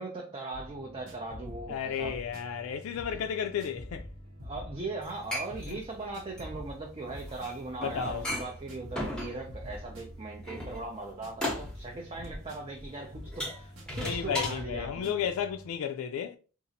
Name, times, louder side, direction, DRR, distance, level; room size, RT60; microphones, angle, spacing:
voice 1, 0.0-2.2 3.1-3.2 4.4-15.3, right 3 dB, 25° right, 0.4 m, -39 dB
sound 1, 0.5-15.7, equal, 65° right, 0.9 m, -46 dB
voice 2, 1.7-4.1 5.7-5.8 7.8-8.2 13.9-16.4, left 8 dB, 75° left, 0.3 m, -33 dB
sound 2, 5.0-14.6, left 1 dB, 5° left, 0.7 m, -37 dB
4.0 x 2.4 x 2.6 m
head